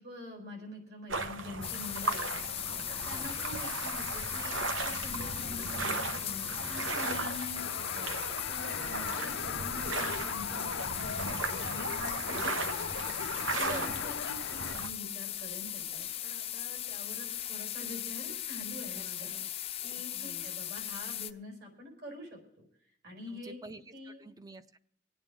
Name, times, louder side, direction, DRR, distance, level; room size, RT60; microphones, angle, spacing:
voice 1, 0.0-12.9 13.5-22.6 23.0-23.6 23.9-24.3, left 1 dB, 55° right, 1 dB, 5.3 m, -46 dB
sound 1, 1.1-14.9, right 3 dB, 90° right, 1.2 m, -37 dB
sound 2, 1.6-21.3, left 12 dB, 30° left, 0.4 m, -38 dB
sound 3, 7.6-14.7, left 7 dB, 85° left, 0.5 m, -40 dB
voice 2, 8.7-9.5 11.3-11.4 12.3-12.5 13.6-14.1 18.7-19.5 20.0-20.5 23.3-24.8, right 2 dB, 20° right, 11 dB, 0.6 m, -49 dB
25.0 x 9.0 x 3.7 m, 0.71 s
head